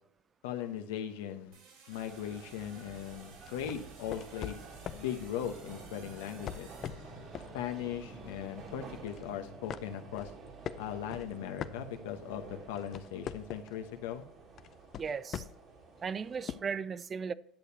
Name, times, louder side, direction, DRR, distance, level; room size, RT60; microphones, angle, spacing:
voice 1, 0.4-1.6 1.9-4.6 4.9-6.7 7.5-10.3 10.8-14.2, left 9 dB, 85° left, 1.0 m, -39 dB
sound 1, 1.5-7.7, right 5 dB, 70° right, 3.2 m, -58 dB
sound 2, 1.9-16.8, right 3 dB, 50° right, 1.8 m, -50 dB
sound 3, 3.4-5.1 6.1-7.6 8.0-8.2 8.6-9.3 9.7-12.3 12.6-13.8 14.6-15.7 16.5-16.6, left 9 dB, 45° left, 0.5 m, -42 dB
voice 2, 15.0-15.4 16.0-17.3, right 6 dB, 30° right, 0.4 m, -36 dB
10.5 x 6.8 x 2.8 m
supercardioid pair, 100°, 0 cm